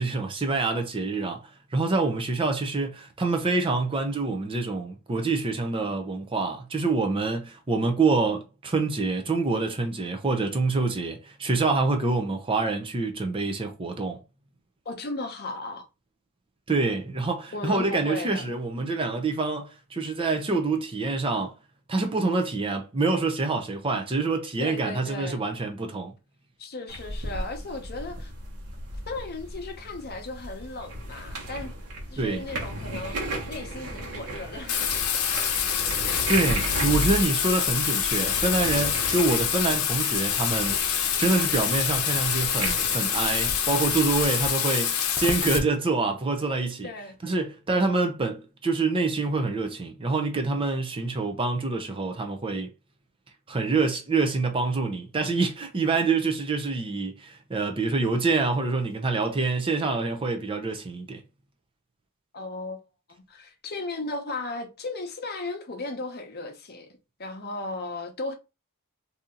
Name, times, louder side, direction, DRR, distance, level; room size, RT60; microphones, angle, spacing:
voice 1, 0.0-1.4 1.7-14.2 16.7-21.5 21.9-26.1 32.2-32.5 35.8-40.8 41.2-46.9 47.2-52.7 53.5-61.2, right 3 dB, 25° right, 0.5 m, -26 dB
voice 2, 14.8-15.9 17.5-18.5 24.6-25.4 26.6-28.3 29.1-31.7 32.1-34.9 46.8-47.1 62.3-62.8 63.1-66.9 67.2-68.3, left 2 dB, 45° left, 0.8 m, -36 dB
sound 1, 26.9-44.5, right 1 dB, 85° right, 1.2 m, -35 dB
Bathtub (filling or washing), 34.7-45.6, left 8 dB, 75° left, 0.7 m, -26 dB
2.7 x 2.7 x 3.7 m
head